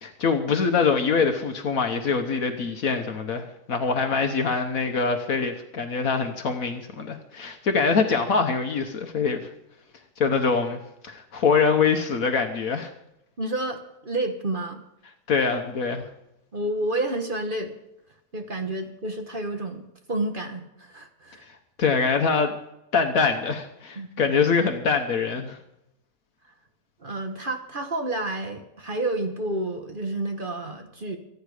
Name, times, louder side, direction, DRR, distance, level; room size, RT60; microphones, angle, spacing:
voice 1, 0.0-9.5 10.2-12.9 15.3-16.1 21.5-22.5 22.9-25.6, left 5 dB, 70° left, 5 dB, 1.5 m, -24 dB
voice 2, 13.4-14.8 16.5-17.7 18.3-21.4 24.0-24.3 27.0-31.2, right 2 dB, 35° right, 5 dB, 1.4 m, -30 dB
24.0 x 9.4 x 5.0 m, 0.86 s
omnidirectional pair, 1.5 m